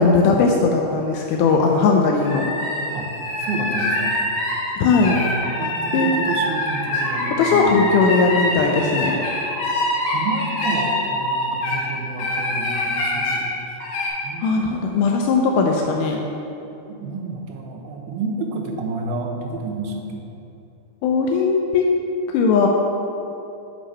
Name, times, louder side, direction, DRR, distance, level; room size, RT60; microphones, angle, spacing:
voice 1, 0.0-2.5 4.8-5.2 5.9-6.1 7.4-9.2 14.4-16.2 21.0-21.9 22.3-22.7, left 4 dB, 85° left, 1 dB, 1.8 m, -18 dB
sound 1, 2.2-11.8 12.2-13.4 13.8-14.1, left 1 dB, 65° left, 2.7 m, -24 dB
voice 2, 3.4-4.2 5.0-7.8 10.1-13.5 14.2-14.8 16.9-20.2, right 3 dB, 90° right, 1 dB, 2.7 m, -30 dB
7.4 x 5.0 x 5.5 m, 2.9 s
omnidirectional pair, 4.2 m